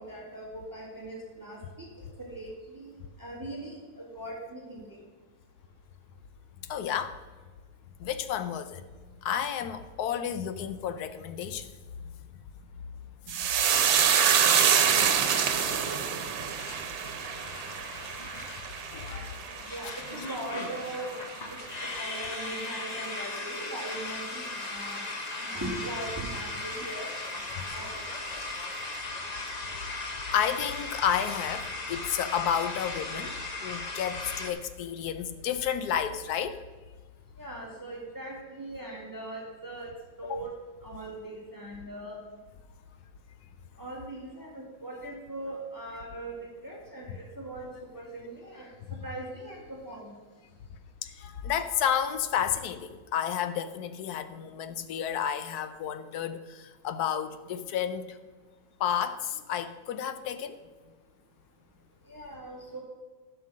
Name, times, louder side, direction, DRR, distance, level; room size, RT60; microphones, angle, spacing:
voice 1, 0.0-1.6 2.2-2.8 3.2-4.8 14.9-16.0 19.7-21.1 22.0-25.0 25.5-27.3 27.7-28.0 37.4-39.9 40.2-40.5 40.8-42.2 43.8-47.1 47.4-48.7 49.0-50.1 62.1-62.8, right 1 dB, 10° right, -3 dB, 1.8 m, -40 dB
voice 2, 6.7-7.2 8.0-8.8 9.2-11.7 13.3-13.4 14.4-14.5 18.9-19.3 27.6-27.7 30.3-36.6 40.2-40.4 51.0-58.2 58.8-60.6, left 9 dB, 70° left, 10 dB, 1.0 m, -31 dB
sound 1, 13.3-21.9 22.2-22.8 23.1-23.4, right 8 dB, 85° right, 1.6 m, -27 dB
sound 2, 15.4-34.5, left 3 dB, 35° left, 0.6 m, -38 dB
11.0 x 5.7 x 6.2 m, 1.3 s
omnidirectional pair, 2.1 m